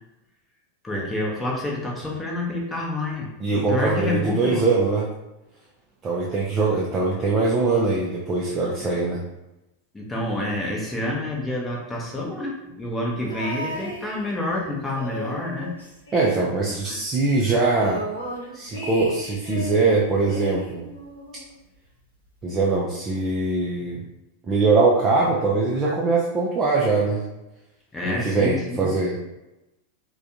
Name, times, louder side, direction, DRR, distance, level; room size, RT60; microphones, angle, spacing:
voice 1, 0.8-4.7 8.8-8.9 9.9-15.7 16.9-17.0 27.9-28.9, left 2 dB, 10° left, -2 dB, 0.7 m, -28 dB
voice 2, 3.4-5.1 6.0-9.2 16.1-18.0 18.5-20.9 22.4-24.1 24.5-27.2 28.0-29.2, right 3 dB, 25° right, -4 dB, 0.4 m, -22 dB
sound 1, 13.3-14.6 14.9-16.8 17.1-17.2 17.5-19.9 20.3-21.5 22.4-22.5, equal, 80° left, 0.8 m, -35 dB
3.3 x 2.2 x 2.7 m, 0.95 s
figure-of-eight pair, 90°, 0 cm